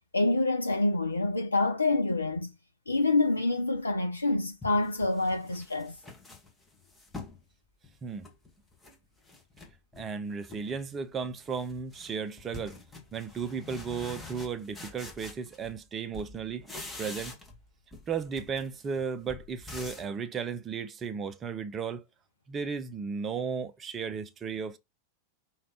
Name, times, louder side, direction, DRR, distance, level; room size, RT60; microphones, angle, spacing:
voice 1, 0.1-2.5 2.9-6.0, left 2 dB, 80° left, 0.4 m, -27 dB
sound 1, 4.6-7.4 7.8-9.0 9.2-10.1 10.4-10.8 11.1-15.9 16.1-17.6 17.9-20.2, left 3 dB, 10° left, 1.3 m, -46 dB
voice 2, 10.0-12.8 13.1-16.6 17.0-17.4 18.1-22.0 22.5-24.8, right 6 dB, 25° right, 0.5 m, -35 dB
5.1 x 2.9 x 2.9 m
figure-of-eight pair, 90°, 0 cm